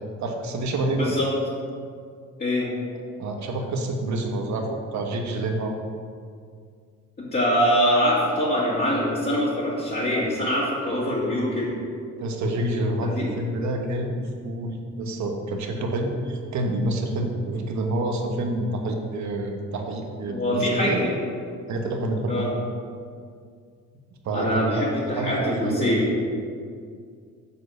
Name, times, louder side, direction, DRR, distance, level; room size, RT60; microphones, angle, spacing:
voice 1, 0.2-1.1 3.2-5.7 12.2-21.0 21.7-22.4 24.2-26.0, right 1 dB, 70° right, 3 dB, 1.2 m, -28 dB
voice 2, 0.9-1.3 2.4-2.7 7.2-11.7 13.0-13.3 20.3-21.1 22.3-22.5 24.3-26.1, equal, 35° left, -9 dB, 2.1 m, -24 dB
7.5 x 4.1 x 6.6 m, 2.2 s
cardioid pair, 90°, 30 cm